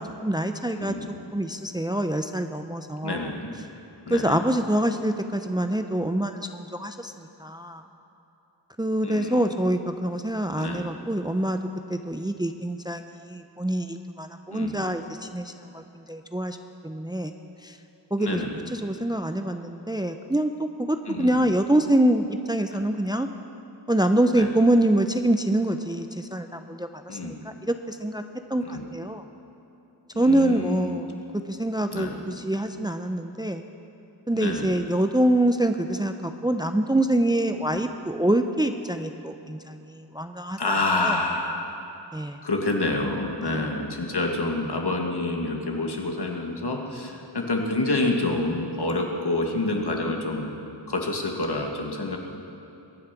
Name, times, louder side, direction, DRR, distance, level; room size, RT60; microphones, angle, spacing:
voice 1, 0.0-0.9 1.3-3.3 4.1-7.8 8.8-11.6 11.9-16.6 16.8-17.3 17.6-17.8 18.1-18.5 18.7-23.3 23.9-28.2 28.5-29.2 30.2-31.2 31.5-33.6 34.3-40.6 41.0-41.2 42.1-42.4 43.4-43.7, right 1 dB, 10° right, 7 dB, 0.6 m, -25 dB
voice 2, 0.7-1.1 3.0-3.5 4.1-4.4 9.0-9.5 10.6-10.8 14.5-14.8 18.2-18.6 21.1-21.5 22.7-22.8 24.3-24.5 27.1-27.4 28.6-28.9 30.1-30.9 31.9-32.2 34.3-34.8 37.7-37.8 40.6-41.7 42.4-50.5 50.9-52.2, left 2 dB, 60° left, 1 dB, 2.1 m, -28 dB
22.0 x 8.7 x 6.0 m, 2.9 s
cardioid pair, 45°, 45 cm